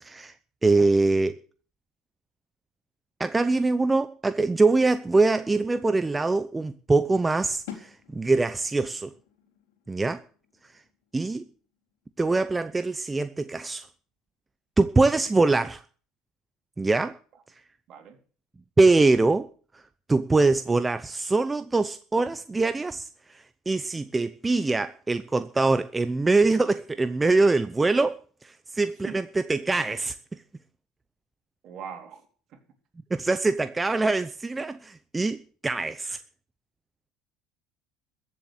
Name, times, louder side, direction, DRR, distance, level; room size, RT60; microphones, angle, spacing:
voice 1, 0.0-0.3 0.6-1.4 3.2-9.1 9.9-10.2 11.1-11.4 12.2-13.9 14.8-15.8 16.8-17.2 18.8-19.5 19.7-19.8 20.1-30.4 33.1-36.2, right 3 dB, 15° right, 0.8 m, -23 dB
sound 1, 7.7-13.4, left 9 dB, 90° left, 3.8 m, -49 dB
voice 2, 31.6-32.6, right 8 dB, 55° right, 3.7 m, -41 dB
14.5 x 7.6 x 8.1 m
supercardioid pair, 90°, 0 cm